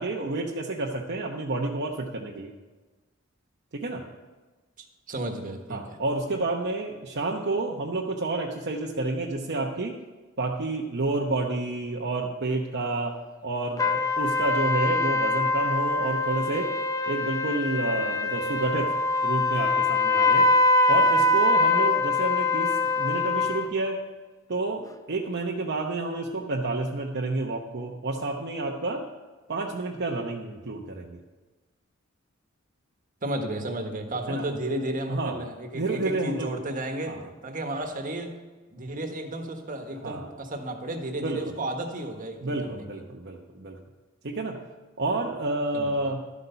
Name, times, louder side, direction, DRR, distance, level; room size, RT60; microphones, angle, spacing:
voice 1, 0.0-2.5 3.7-4.0 5.7-9.9 10.4-13.1 13.4-16.7 17.1-18.9 19.2-20.5 20.9-24.0 24.5-29.0 29.5-31.2 34.3-34.5 35.1-35.4 35.7-36.5 37.1-37.2 40.0-40.3 41.2-41.4 42.4-43.8 44.2-44.6 45.0-46.2, right 2 dB, 60° right, -1 dB, 0.9 m, -29 dB
voice 2, 4.8-6.0 33.2-38.4 38.7-43.0 45.7-46.1, right 1 dB, 45° right, 4 dB, 1.5 m, -33 dB
sound 1, 13.8-23.7, left 3 dB, 15° left, 0.6 m, -23 dB
12.5 x 8.1 x 5.7 m, 1.3 s
head